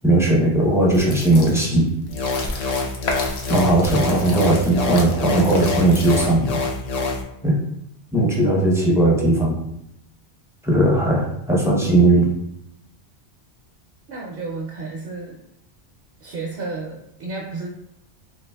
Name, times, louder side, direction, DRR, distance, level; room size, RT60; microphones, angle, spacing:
voice 1, 0.0-1.9 3.5-6.5 7.4-7.6 8.1-9.6 10.6-12.3, right 2 dB, 5° right, -4 dB, 0.5 m, -18 dB
sound 1, 0.9-6.5, left 2 dB, 70° left, 0.9 m, -33 dB
sound 2, 2.1-7.2, left 3 dB, 50° left, 0.5 m, -26 dB
voice 2, 14.1-15.4 16.2-17.7, right 3 dB, 65° right, -1 dB, 0.7 m, -32 dB
3.8 x 2.9 x 2.2 m, 0.81 s
omnidirectional pair, 1.1 m